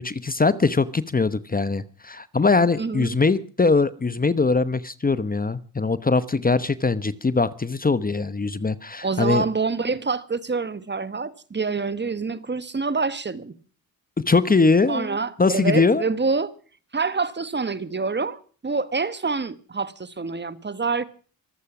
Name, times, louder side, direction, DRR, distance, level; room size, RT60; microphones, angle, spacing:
voice 1, 0.0-9.4 14.2-16.0, left 4 dB, 20° left, 1.0 m, -21 dB
voice 2, 2.8-3.2 9.0-13.5 14.9-16.5 16.9-21.0, right 4 dB, 25° right, 1.2 m, -26 dB
24.5 x 8.4 x 6.0 m
supercardioid pair, 60°, 39 cm